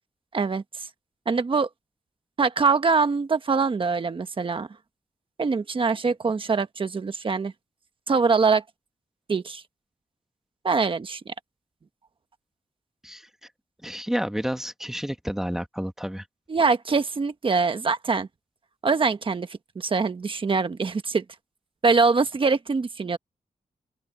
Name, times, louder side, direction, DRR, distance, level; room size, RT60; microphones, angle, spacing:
voice 1, 1.3-1.7 2.4-4.7 5.4-7.5 8.1-8.6 9.3-9.6 10.6-11.3 16.5-18.3 18.8-19.5 19.7-21.2 21.8-23.2, right 4 dB, 40° right, 1.2 m, -23 dB
voice 2, 13.8-16.3, equal, 5° right, 1.3 m, -30 dB
open air
wide cardioid pair, 175°, 14 cm